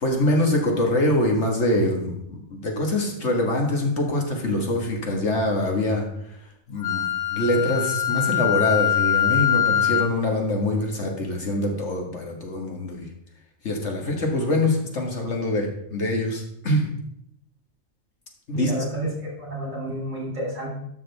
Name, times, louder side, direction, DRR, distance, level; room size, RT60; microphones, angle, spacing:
voice 1, 0.0-6.1 6.7-7.0 7.3-13.1 13.6-16.9 18.5-18.7, left 1 dB, 65° left, 1 dB, 1.9 m, -24 dB
Wind instrument woodwind instrument, 6.8-10.2, left 10 dB, 30° left, 0.8 m, -23 dB
voice 2, 18.5-20.7, right 1 dB, 80° right, -2 dB, 3.6 m, -30 dB
12.0 x 6.3 x 3.4 m, 0.75 s
omnidirectional pair, 1.3 m